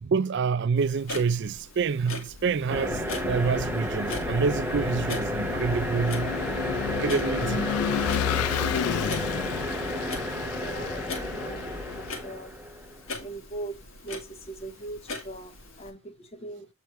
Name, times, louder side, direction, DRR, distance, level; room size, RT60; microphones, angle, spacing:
voice 1, 0.0-6.4 7.0-7.8 8.4-8.5, right 5 dB, 55° right, 0.4 m, -27 dB
Clock, 0.8-15.9, left 2 dB, 60° left, 1.9 m, -42 dB
Vehicle / Engine, 2.4-12.2, left 9 dB, 80° left, 0.3 m, -32 dB
sound 1, 2.7-13.0, equal, 10° right, 0.7 m, -32 dB
voice 2, 10.5-12.5 13.2-13.8 14.0-16.7, right 2 dB, 30° left, 0.8 m, -40 dB
8.1 x 4.6 x 3.0 m
head